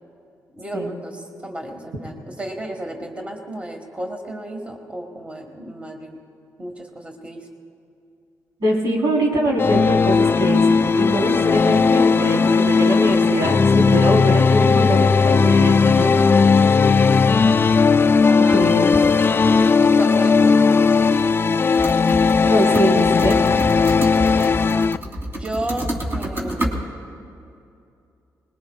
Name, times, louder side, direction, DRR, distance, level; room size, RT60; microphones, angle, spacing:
voice 1, 0.5-6.2 6.6-7.5 18.3-18.7 19.8-20.9 24.2-24.6 25.3-26.8, right 1 dB, 20° right, 3 dB, 1.6 m, -33 dB
voice 2, 8.6-16.2 18.5-18.9 22.4-23.4, equal, 80° right, -3 dB, 3.8 m, -22 dB
sound 1, 9.6-25.0, left 5 dB, 35° left, 0.3 m, -16 dB
Typing (HP laptop), 21.7-22.5 22.7-26.8, right 1 dB, 35° right, 3.1 m, -28 dB
20.5 x 20.5 x 2.4 m, 2.6 s
cardioid pair, 60°, 7 cm